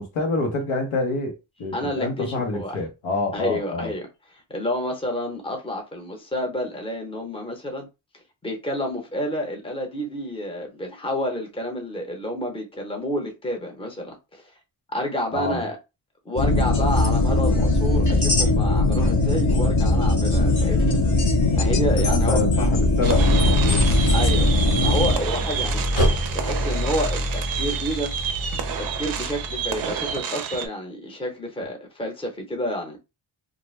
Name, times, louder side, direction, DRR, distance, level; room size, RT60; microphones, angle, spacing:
voice 1, 0.0-3.9 15.3-15.6 22.0-23.9, left 3 dB, 90° left, 1.0 m, -27 dB
voice 2, 1.7-2.8 3.3-4.1 4.3-7.9 8.4-14.4 14.9-15.8 16.3-21.0 21.5-22.4 24.1-24.5 24.8-25.8 26.3-28.1 28.8-33.0, equal, 10° left, 0.7 m, -29 dB
sound 1, 16.4-25.1, left 2 dB, 35° left, 0.8 m, -20 dB
Idling, 23.0-30.1, equal, 70° left, 1.4 m, -26 dB
sound 2, 23.0-30.7, right 8 dB, 45° right, 0.5 m, -29 dB
2.5 x 2.1 x 3.1 m
cardioid pair, 110°, 49 cm